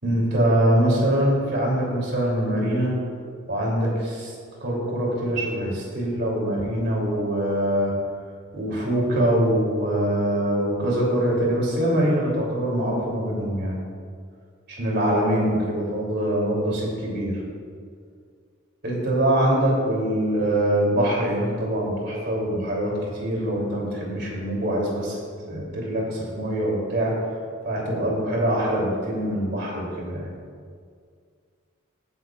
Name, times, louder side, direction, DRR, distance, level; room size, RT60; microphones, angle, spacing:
voice 1, 0.0-2.9 3.4-4.3 4.6-7.9 8.5-13.8 14.7-17.4 18.8-22.9 23.2-25.2 25.5-27.1 27.6-30.3, right 1 dB, 55° right, -3 dB, 3.1 m, -23 dB
17.0 x 9.7 x 2.5 m, 2.1 s
head